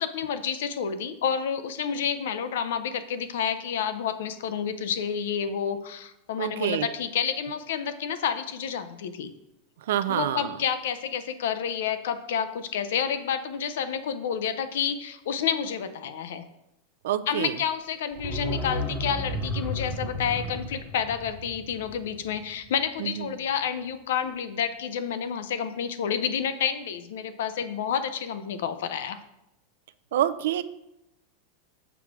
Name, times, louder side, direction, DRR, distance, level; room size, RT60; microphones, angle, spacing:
voice 1, 0.0-9.3 10.1-16.5 17.3-29.2, left 7 dB, 75° left, 12 dB, 0.6 m, -29 dB
voice 2, 6.4-6.9 9.9-10.5 17.0-17.5 23.0-23.1 30.1-30.6, right 12 dB, 75° right, 13 dB, 0.4 m, -26 dB
sound 1, 18.1-22.9 23.2-23.3, left 1 dB, 10° left, 0.8 m, -33 dB
6.9 x 3.6 x 5.8 m, 0.87 s
supercardioid pair, 175°, 0 cm